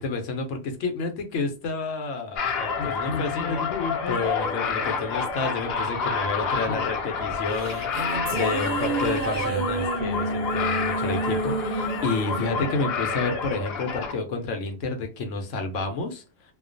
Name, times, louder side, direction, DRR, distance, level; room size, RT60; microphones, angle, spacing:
voice 1, 0.0-3.6 4.1-16.5, left 3 dB, 85° left, 4 dB, 1.0 m, -30 dB
sound 1, 2.4-14.1, left 5 dB, 65° left, 0.7 m, -29 dB
sound 2, 7.3-13.9, right 3 dB, 60° right, 0.6 m, -30 dB
2.4 x 2.2 x 2.5 m, 0.32 s
omnidirectional pair, 1.3 m